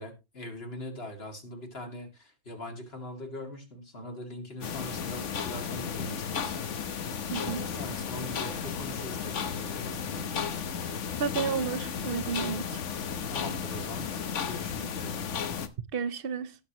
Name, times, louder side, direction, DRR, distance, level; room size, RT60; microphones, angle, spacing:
voice 1, 0.0-6.6 7.3-10.6 13.3-15.2, left 1 dB, 55° left, 2.6 m, -42 dB
sound 1, 4.6-15.7, left 7 dB, 85° left, 1.3 m, -34 dB
voice 2, 7.3-7.7 11.2-12.8 15.9-16.5, right 6 dB, 55° right, 0.9 m, -32 dB
18.0 x 6.5 x 2.9 m
omnidirectional pair, 1.2 m